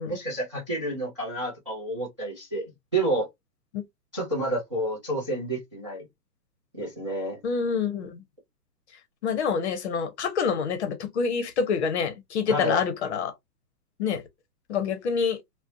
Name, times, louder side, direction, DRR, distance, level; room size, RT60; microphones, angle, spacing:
voice 1, 0.0-3.3 4.1-6.1 6.7-7.4 12.5-12.8, right 1 dB, 20° right, 0.4 m, -29 dB
voice 2, 7.4-8.2 9.2-13.3 14.0-14.2 14.7-15.4, left 6 dB, 45° left, 0.6 m, -27 dB
2.6 x 2.1 x 2.4 m
hypercardioid pair, 145°, 49 cm